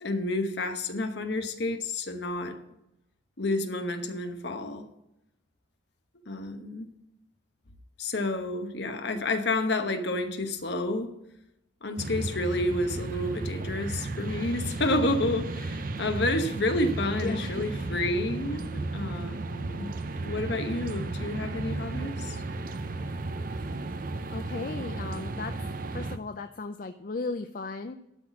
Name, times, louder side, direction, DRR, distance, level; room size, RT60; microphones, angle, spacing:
voice 1, 0.0-2.6 3.4-4.9 6.3-6.9 8.0-11.1 11.8-22.4, left 2 dB, 60° left, 1.0 m, -30 dB
sound 1, 12.0-26.2, right 2 dB, 45° right, 0.5 m, -34 dB
voice 2, 17.1-17.6 23.6-23.7 24.3-25.6 25.9-27.9, left 3 dB, 45° left, 0.4 m, -36 dB
12.0 x 4.1 x 7.3 m
head